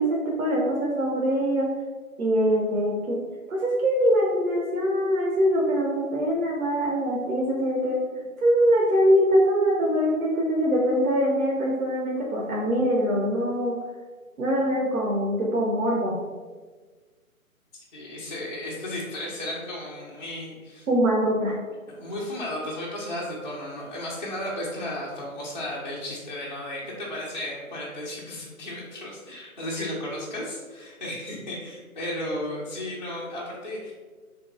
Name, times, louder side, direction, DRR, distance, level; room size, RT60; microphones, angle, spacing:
voice 1, 0.0-1.7 2.2-3.2 3.5-8.0 8.4-13.8 14.4-16.2 20.9-21.6, equal, 70° right, -3 dB, 0.8 m, -23 dB
voice 2, 17.7-20.9 21.9-33.9, left 1 dB, 35° left, -6 dB, 0.4 m, -34 dB
3.6 x 3.0 x 2.3 m, 1.4 s
figure-of-eight pair, 150°, 43 cm